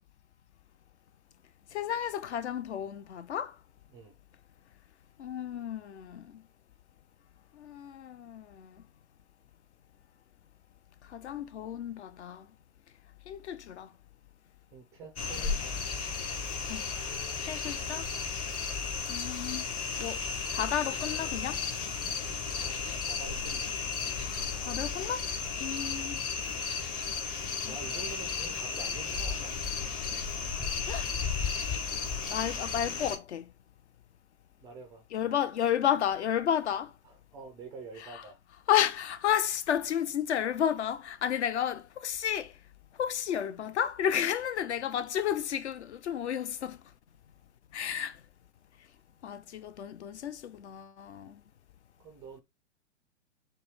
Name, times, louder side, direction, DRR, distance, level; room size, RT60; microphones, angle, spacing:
voice 1, 1.7-3.6 5.2-6.4 7.5-8.8 11.1-12.5 13.3-13.9 16.7-16.9 17.4-18.1 19.1-19.7 20.0-20.2 20.5-21.6 24.6-25.3 25.6-26.2 27.6-27.8 30.9-31.1 32.3-33.5 35.1-36.9 38.0-38.2 38.7-42.5 43.0-46.8 47.7-48.2 49.2-51.4, left 9 dB, 65° left, 0.8 m, -32 dB
voice 2, 14.7-15.7 18.5-18.7 22.4-23.7 25.8-26.0 27.6-29.6 34.6-35.4 37.0-38.4 52.0-52.4, right 5 dB, 10° right, 0.3 m, -47 dB
sound 1, 15.2-33.2, left 5 dB, 20° left, 0.8 m, -34 dB
6.6 x 2.2 x 3.5 m
hypercardioid pair, 125°, 37 cm